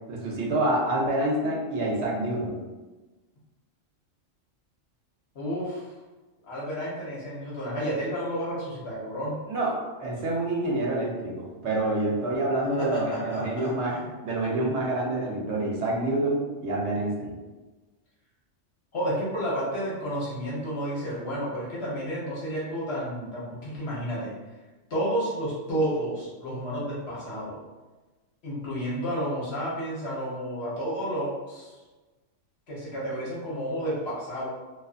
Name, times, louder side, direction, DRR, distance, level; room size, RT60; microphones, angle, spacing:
voice 1, 0.1-2.6 9.5-14.0 14.2-17.3, right 2 dB, 65° right, -3 dB, 0.8 m, -27 dB
voice 2, 5.3-6.0 6.4-9.4 12.8-14.0 18.9-24.3 24.9-27.6 28.4-31.8 32.7-34.5, equal, 60° left, -7 dB, 1.1 m, -31 dB
2.5 x 2.4 x 2.3 m, 1.2 s
omnidirectional pair, 1.3 m